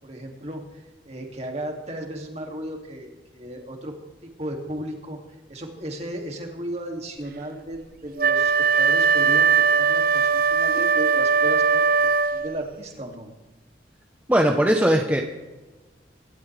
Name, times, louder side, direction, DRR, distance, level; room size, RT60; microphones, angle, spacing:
voice 1, 0.0-3.9 4.4-5.2 5.5-13.3, right 1 dB, 35° right, 1 dB, 2.6 m, -35 dB
Wind instrument woodwind instrument, 8.2-12.6, right 6 dB, 50° right, 0.6 m, -20 dB
voice 2, 14.3-15.2, equal, 10° right, 1 dB, 1.0 m, -19 dB
25.0 x 12.5 x 3.4 m, 1.2 s
head